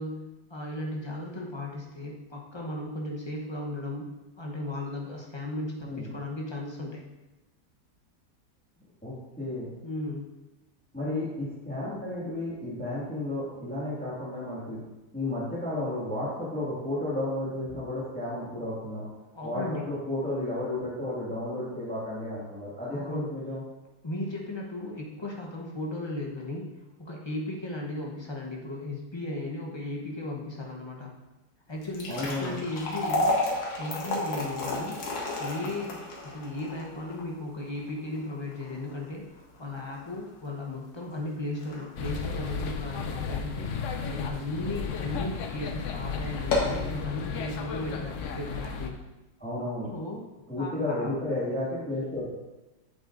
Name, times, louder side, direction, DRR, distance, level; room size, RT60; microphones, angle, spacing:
voice 1, 0.0-4.1 4.4-7.0 9.8-10.3 19.3-19.9 22.9-23.3 24.0-31.1 31.7-35.1 35.4-49.0 49.9-50.2 50.6-51.1, left 2 dB, 30° left, -1 dB, 0.5 m, -36 dB
voice 2, 9.0-9.7 10.9-14.8 15.1-19.1 19.4-23.6 32.1-32.5 49.4-49.9 50.5-52.2, left 1 dB, 5° left, -8 dB, 1.8 m, -32 dB
sound 1, 31.7-44.0 44.5-44.6 45.3-45.4 45.8-45.9 46.3-46.9, left 2 dB, 90° left, 2.0 m, -32 dB
sound 2, 42.0-48.9, left 5 dB, 70° left, 0.7 m, -34 dB
8.0 x 7.6 x 2.6 m, 1.1 s
omnidirectional pair, 2.0 m